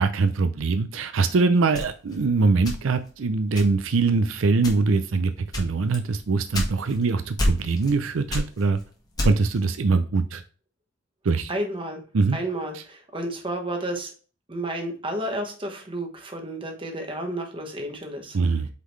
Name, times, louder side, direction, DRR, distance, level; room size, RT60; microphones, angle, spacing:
voice 1, 0.0-8.8 9.2-10.4 11.2-11.5 12.1-12.4 12.7-12.8 18.3-18.7, right 4 dB, 75° right, 9 dB, 0.5 m, -23 dB
sound 1, 1.7-3.1 3.5-4.0 4.6-5.0 5.5-7.0 7.4-8.0 8.3-9.6, left 1 dB, 20° left, 1.5 m, -28 dB
voice 2, 11.5-12.0 12.3-14.1 14.5-18.4, right 1 dB, 25° right, 2 dB, 1.3 m, -31 dB
8.2 x 3.9 x 3.2 m, 0.38 s
head